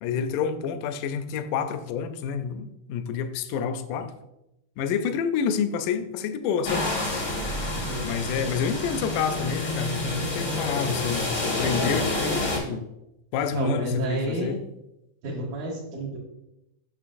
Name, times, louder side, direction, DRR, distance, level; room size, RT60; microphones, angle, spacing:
voice 1, 0.0-4.1 4.8-6.9 8.0-12.9 13.3-14.6, left 7 dB, 80° left, 10 dB, 1.9 m, -28 dB
sound 1, 6.6-12.6, left 2 dB, 55° left, 0.7 m, -28 dB
voice 2, 13.5-14.5 15.2-16.2, right 1 dB, 70° right, -5 dB, 2.4 m, -30 dB
8.8 x 6.3 x 2.5 m, 0.89 s
omnidirectional pair, 4.0 m